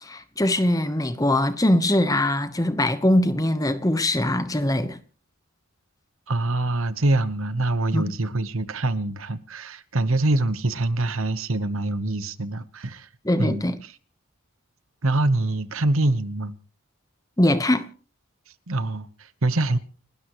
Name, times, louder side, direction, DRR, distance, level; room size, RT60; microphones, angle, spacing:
voice 1, 0.0-5.0 7.9-8.1 13.2-13.8 17.4-17.9, left 1 dB, 15° left, 1.1 m, -22 dB
voice 2, 6.3-13.1 13.4-13.9 15.0-16.5 18.7-19.8, right 2 dB, 70° right, 1.1 m, -25 dB
30.0 x 12.5 x 3.1 m
head